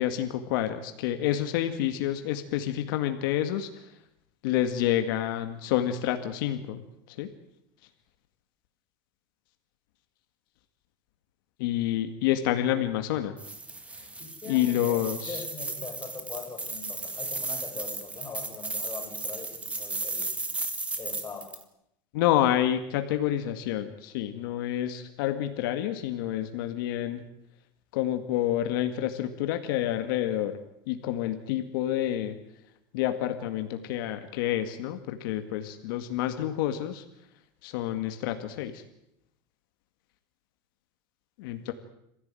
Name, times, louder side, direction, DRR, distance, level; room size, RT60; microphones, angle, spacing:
voice 1, 0.0-3.9 4.4-6.8 7.1-7.3 11.6-13.4 14.0-14.1 14.5-15.4 22.1-27.2 27.9-30.6 30.9-32.4 32.9-37.0 37.6-38.8 41.4-41.7, left 12 dB, 75° left, 7 dB, 2.1 m, -28 dB
sound 1, 13.4-21.6, right 3 dB, 10° right, 2.1 m, -35 dB
voice 2, 14.2-20.5 21.0-21.6, left 4 dB, 20° left, 1 dB, 5.6 m, -42 dB
26.5 x 15.5 x 9.1 m, 0.79 s
supercardioid pair, 145°, 11 cm